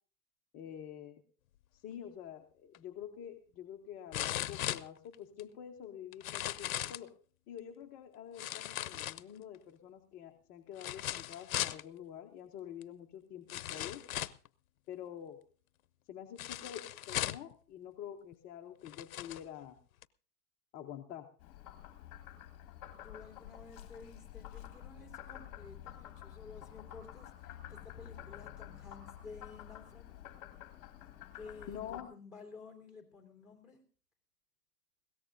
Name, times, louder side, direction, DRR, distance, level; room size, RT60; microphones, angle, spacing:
voice 1, 0.5-1.2 1.7-7.1 7.5-14.1 14.9-15.4 16.1-19.8 20.7-21.3 31.7-32.1, left 9 dB, 20° left, 4 dB, 0.6 m, -47 dB
sound 1, 2.7-2.8 4.1-5.4 6.1-7.1 8.4-9.6 10.8-11.8 12.8-12.9 13.5-14.5 16.4-17.5 18.3-18.4 18.8-19.4 20.0-20.1, left 13 dB, 65° left, 0.7 m, -38 dB
Frog, 21.4-32.0, left 12 dB, 35° left, 1.7 m, -50 dB
voice 2, 23.0-30.2 31.3-33.9, left 4 dB, ahead, 1 dB, 3.5 m, -53 dB
21.0 x 17.0 x 2.6 m, 0.40 s
hypercardioid pair, 135°, 46 cm